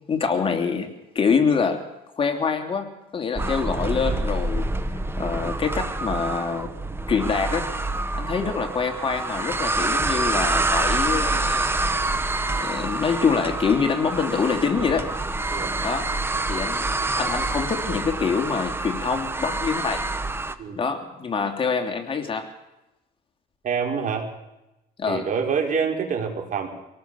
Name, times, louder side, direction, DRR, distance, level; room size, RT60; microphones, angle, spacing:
voice 1, 0.1-1.8 2.1-4.7 5.2-6.7 7.1-7.7 8.2-11.7 12.6-15.1 15.8-16.1 16.5-16.9 17.2-20.1 20.7-22.5 25.0-25.3, left 5 dB, 30° left, 5 dB, 2.8 m, -25 dB
sound 1, 3.4-20.6, right 2 dB, 15° right, 1.5 m, -27 dB
voice 2, 23.6-24.3 25.1-26.7, right 6 dB, 50° right, 3 dB, 5.0 m, -26 dB
25.5 x 18.5 x 7.1 m, 0.94 s
cardioid pair, 110°, 17 cm